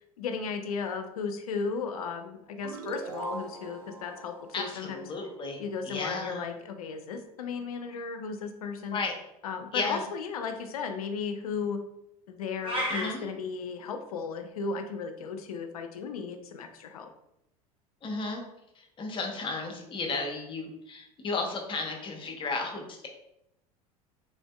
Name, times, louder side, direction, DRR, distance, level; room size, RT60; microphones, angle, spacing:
voice 1, 0.2-5.1 5.6-9.0 9.4-11.8 12.3-17.1, left 5 dB, 70° left, 7 dB, 0.4 m, -35 dB
sound 1, 2.6-5.9, right 3 dB, 75° right, 0.4 m, -42 dB
voice 2, 4.5-5.6 5.8-6.4 8.9-9.1 9.7-10.0 12.9-13.3 18.0-18.4 18.8-23.1, left 3 dB, 25° left, 2 dB, 0.7 m, -34 dB
sound 2, 12.6-13.1, equal, 25° right, 1.1 m, -30 dB
3.6 x 2.5 x 2.2 m, 0.82 s
figure-of-eight pair, 75°, 20 cm